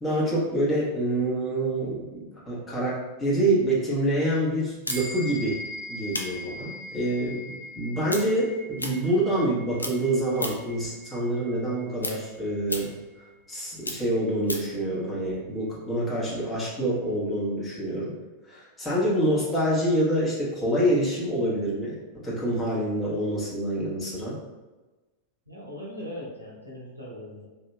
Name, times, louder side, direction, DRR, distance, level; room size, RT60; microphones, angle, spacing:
voice 1, 0.0-2.9 3.2-5.6 5.9-7.4 7.8-12.9 13.5-18.1 18.5-24.4, right 1 dB, 15° left, -7 dB, 1.1 m, -26 dB
sound 1, 4.8-9.5 9.8-10.8 11.2-14.8, left 2 dB, 80° left, 0.3 m, -36 dB
sound 2, 4.9-14.6, left 1 dB, 25° right, 0.4 m, -43 dB
voice 2, 25.5-27.5, equal, 85° right, -5 dB, 0.8 m, -39 dB
2.9 x 2.7 x 2.2 m, 1.2 s
figure-of-eight pair, 90°, 0 cm